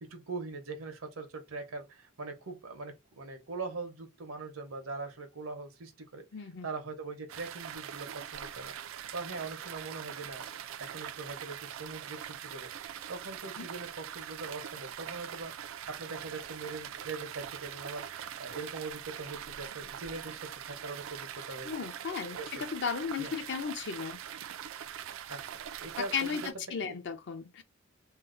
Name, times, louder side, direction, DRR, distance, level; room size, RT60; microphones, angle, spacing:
voice 1, 0.0-6.3 6.6-10.5 10.8-12.7 13.1-21.7 22.3-22.6 23.2-23.3 25.3-26.5 26.8-27.0, right 3 dB, 85° right, 0.9 m, -42 dB
voice 2, 6.3-6.7 13.6-13.7 21.6-24.2 26.1-27.6, left 6 dB, 55° left, 0.5 m, -35 dB
sound 1, 7.3-26.5, right 9 dB, 70° right, 0.3 m, -43 dB
2.7 x 2.0 x 3.7 m
head